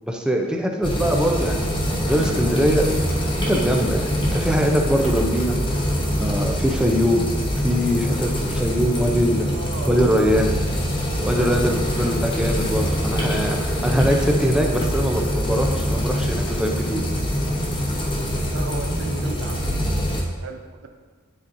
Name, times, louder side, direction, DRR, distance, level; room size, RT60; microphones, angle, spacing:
voice 1, 0.0-2.9 3.5-7.2 7.5-9.6 9.9-10.5 11.2-17.0, equal, 5° right, 1 dB, 0.4 m, -22 dB
sound 1, 0.8-20.2, equal, 20° left, 0.8 m, -24 dB
voice 2, 9.5-10.2 11.1-11.7 18.5-20.9, right 4 dB, 55° right, 5 dB, 0.5 m, -37 dB
9.9 x 4.0 x 2.6 m, 1.5 s
head